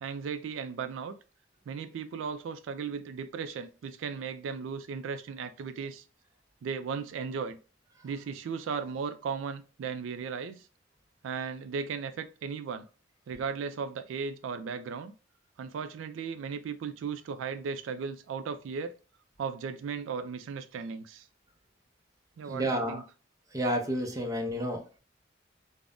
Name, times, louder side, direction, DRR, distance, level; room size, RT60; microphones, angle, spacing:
voice 1, 0.0-1.1 1.7-6.0 6.6-7.6 8.0-10.7 11.2-12.9 13.3-15.1 15.6-18.9 19.4-21.3 22.4-23.0, right 6 dB, 80° right, 0.3 m, -36 dB
voice 2, 22.5-23.0 23.5-24.8, equal, 20° right, 0.5 m, -30 dB
2.5 x 2.1 x 3.4 m
head